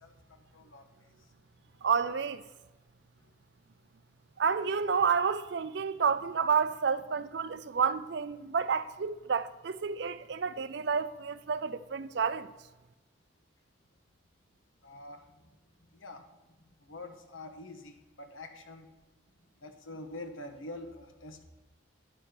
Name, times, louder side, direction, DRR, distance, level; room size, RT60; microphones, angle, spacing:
voice 1, 0.0-0.8 14.8-15.2 15.9-16.2 16.8-18.9 19.6-21.4, left 2 dB, 85° left, 1.1 m, -45 dB
voice 2, 1.8-2.4 4.4-12.5, right 6 dB, 60° right, 0.4 m, -30 dB
10.0 x 5.0 x 5.8 m
head